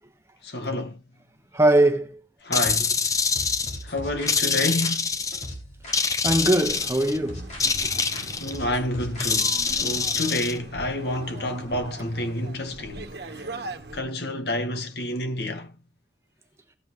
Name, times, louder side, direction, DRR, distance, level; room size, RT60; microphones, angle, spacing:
voice 1, 0.4-1.0 2.4-3.0 3.8-5.2 8.4-13.5 13.9-15.7, left 1 dB, 65° left, 1.4 m, -29 dB
voice 2, 1.5-2.3 6.2-7.9, right 1 dB, 15° right, 1.2 m, -22 dB
sound 1, 2.5-3.8 4.3-5.5 5.9-7.2 7.6-8.6 9.2-10.5, left 5 dB, 20° left, 0.6 m, -25 dB
sound 2, 3.3-6.0 6.2-7.8 8.1-9.7, left 1 dB, 40° left, 4.7 m, -39 dB
sound 3, 6.7-14.0, right 2 dB, 60° right, 1.3 m, -40 dB
16.5 x 7.9 x 3.1 m
head